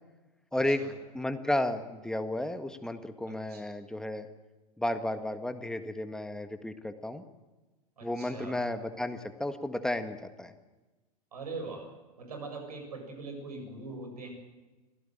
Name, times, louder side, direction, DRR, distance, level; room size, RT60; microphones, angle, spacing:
voice 1, 0.5-0.8 1.1-4.3 4.8-7.2 8.0-10.5, left 1 dB, 5° left, 9 dB, 1.7 m, -33 dB
voice 2, 3.3-3.6 8.0-8.7 11.3-11.9 12.2-14.3, right 3 dB, 75° right, 4 dB, 7.4 m, -42 dB
25.5 x 16.5 x 9.1 m, 1.2 s
figure-of-eight pair, 90°, 20 cm